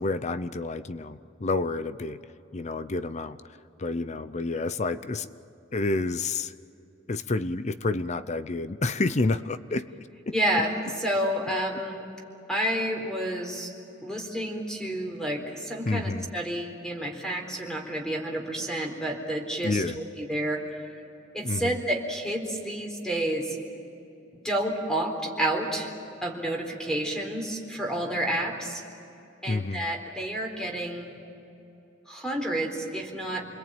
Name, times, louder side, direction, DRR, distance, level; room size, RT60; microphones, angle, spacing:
voice 1, 0.0-2.2 2.5-3.4 3.8-5.3 5.7-6.5 7.1-9.9 10.3-10.4 15.8-16.3 19.6-20.0 21.4-21.8 29.5-29.9, left 3 dB, 40° left, 13 dB, 0.6 m, -29 dB
voice 2, 10.3-12.1 12.5-13.7 14.0-20.6 21.3-23.6 24.3-25.9 26.2-28.8 29.4-31.1 32.1-33.4, right 1 dB, 5° left, 1 dB, 4.0 m, -30 dB
28.5 x 21.5 x 9.0 m, 2.9 s
head